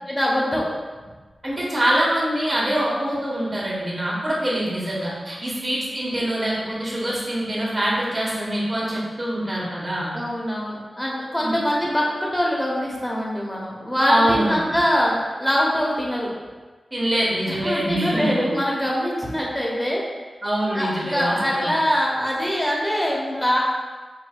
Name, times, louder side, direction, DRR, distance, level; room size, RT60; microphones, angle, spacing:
voice 1, 0.1-0.7 10.1-16.3 17.5-20.0 20.7-23.6, equal, 15° left, -3 dB, 1.0 m, -23 dB
voice 2, 1.4-10.1 11.4-11.5 14.1-14.6 16.9-18.5 20.4-21.7, right 1 dB, 35° right, -6 dB, 1.3 m, -24 dB
4.8 x 2.5 x 2.4 m, 1.3 s
cardioid pair, 45°, 0 cm